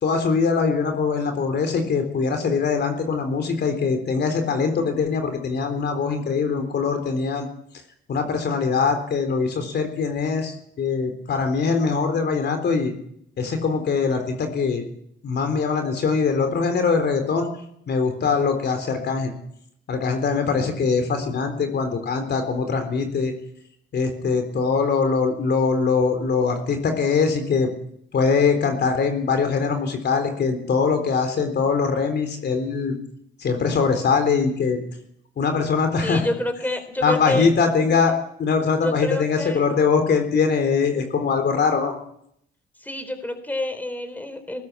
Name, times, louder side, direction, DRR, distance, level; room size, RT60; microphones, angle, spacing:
voice 1, 0.0-7.5 8.1-12.9 13.4-14.9 15.2-17.5 17.9-19.3 19.9-23.3 23.9-27.7 28.1-33.0 33.4-34.8 35.4-36.2 37.0-38.1 38.4-42.0, left 5 dB, 60° left, 6 dB, 3.9 m, -22 dB
voice 2, 36.0-37.5 38.8-39.6 42.8-44.6, left 1 dB, 10° left, 9 dB, 3.9 m, -28 dB
19.5 x 19.0 x 8.4 m, 0.73 s
cardioid pair, 90°, 20 cm